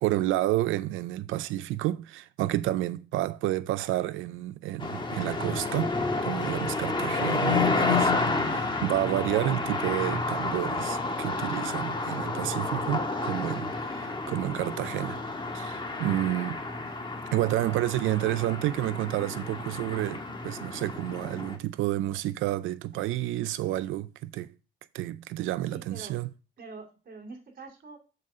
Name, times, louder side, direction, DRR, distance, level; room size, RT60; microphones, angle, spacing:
voice 1, 0.0-8.1 8.5-15.2 15.5-16.6 17.3-24.5 24.9-26.3, right 15 dB, 90° right, 0.5 m, -30 dB
sound 1, 4.8-21.6, left 3 dB, 25° left, 1.6 m, -30 dB
voice 2, 25.7-26.2 26.6-28.0, right 4 dB, 45° right, 2.6 m, -45 dB
7.3 x 3.9 x 6.1 m
cardioid pair, 90°, 20 cm